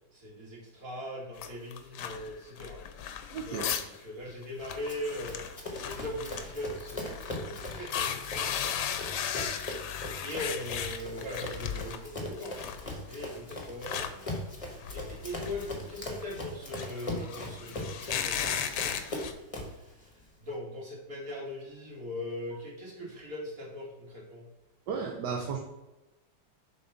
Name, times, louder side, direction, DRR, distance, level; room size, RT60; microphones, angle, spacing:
voice 1, 0.1-2.8 3.5-8.6 9.7-19.0 19.4-24.5, left 1 dB, 45° right, -4 dB, 2.6 m, -41 dB
sound 1, 1.4-4.0 4.3-4.4 4.6-12.0 12.4-19.3, left 8 dB, 70° left, 1.2 m, -36 dB
voice 2, 3.3-3.7 24.9-25.6, right 5 dB, 65° right, 2 dB, 1.3 m, -34 dB
Run, 4.9-19.8, left 1 dB, 20° left, 1.1 m, -40 dB
7.1 x 4.0 x 5.7 m, 1.0 s
omnidirectional pair, 2.2 m